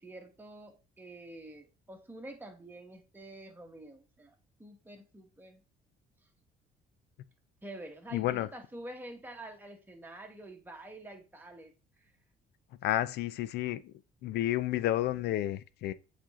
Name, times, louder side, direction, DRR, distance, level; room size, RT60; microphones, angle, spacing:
voice 1, 0.0-4.3 4.6-5.6 7.6-12.0, right 1 dB, 10° right, 1.5 m, -48 dB
voice 2, 8.1-8.5 12.8-13.9 14.2-15.9, left 14 dB, 75° left, 0.5 m, -31 dB
7.6 x 4.4 x 3.7 m
cardioid pair, 110°, 17 cm